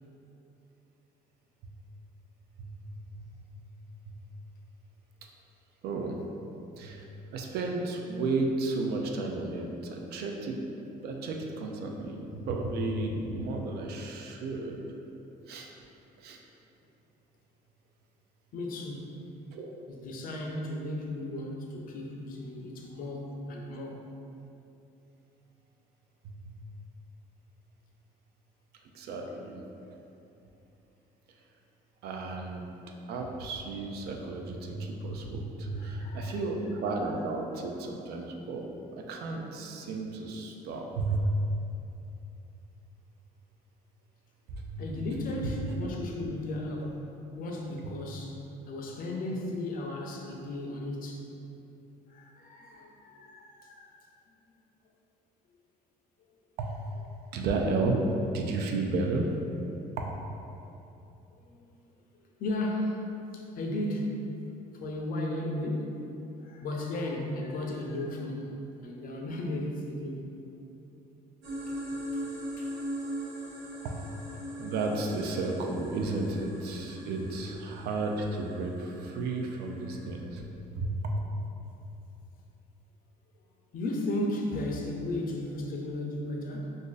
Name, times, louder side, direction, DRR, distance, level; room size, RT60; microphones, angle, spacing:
voice 1, 2.6-3.5 4.1-4.2 5.8-6.2 6.8-7.0 7.3-10.6 11.0-14.8 15.5-15.7 16.2-16.4 19.5-19.7 26.2-26.5 28.9-29.6 32.0-32.6 33.1-41.3 44.5-44.6 56.6-56.8 57.3-58.0 58.3-59.3 60.0-60.1 73.8-73.9 74.6-80.4 80.7-81.2, right 3 dB, 70° right, 1 dB, 0.4 m, -33 dB
voice 2, 18.5-19.1 19.9-24.0 35.7-36.4 44.8-47.0 47.3-48.4 48.7-51.2 52.1-54.0 56.2-56.3 61.4-61.7 62.2-64.4 64.7-66.0 66.4-68.6 68.8-70.3 71.7-71.8 72.1-72.3 72.6-72.7 83.7-86.8, left 1 dB, 55° left, 0 dB, 0.5 m, -35 dB
sound 1, 71.4-80.2, right 1 dB, 85° right, 0.9 m, -40 dB
2.5 x 2.5 x 3.8 m, 2.9 s
cardioid pair, 110°, 17 cm